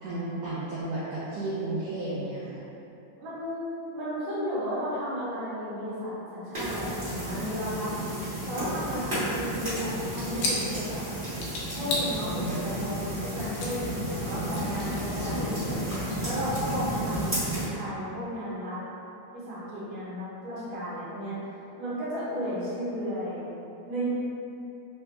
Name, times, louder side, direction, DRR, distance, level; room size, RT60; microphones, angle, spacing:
voice 1, 0.0-2.6 12.3-12.5 14.0-14.1, right 2 dB, 85° right, -10 dB, 1.4 m, -33 dB
voice 2, 3.2-8.1 8.5-11.1 11.7-15.7 16.2-18.8 19.3-21.4 21.8-23.5 23.9-24.1, equal, 65° right, -11 dB, 2.2 m, -34 dB
sound 1, 6.5-17.7, right 1 dB, 35° right, 0.8 m, -32 dB
sound 2, 10.0-11.0 11.4-12.1 12.4-13.7 14.0-16.6, left 2 dB, 85° left, 2.1 m, -34 dB
5.2 x 2.2 x 3.4 m, 2.8 s
omnidirectional pair, 3.5 m